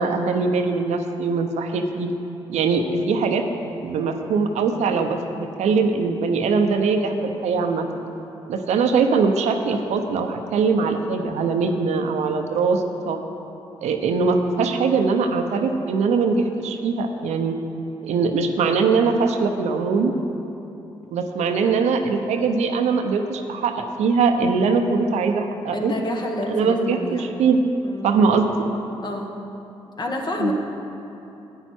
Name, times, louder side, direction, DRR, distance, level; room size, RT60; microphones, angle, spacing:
voice 1, 0.0-2.1 2.5-3.4 3.8-8.0 8.5-13.2 13.8-17.6 18.0-20.1 21.1-25.9 26.5-27.6 28.0-28.5 30.4-30.5, right 4 dB, 75° right, 5 dB, 0.8 m, -21 dB
voice 2, 25.7-27.4 27.8-28.1 29.0-29.3 30.0-30.5, left 1 dB, 40° left, 1 dB, 1.5 m, -28 dB
10.5 x 8.8 x 4.5 m, 2.9 s
supercardioid pair, 50°, 12 cm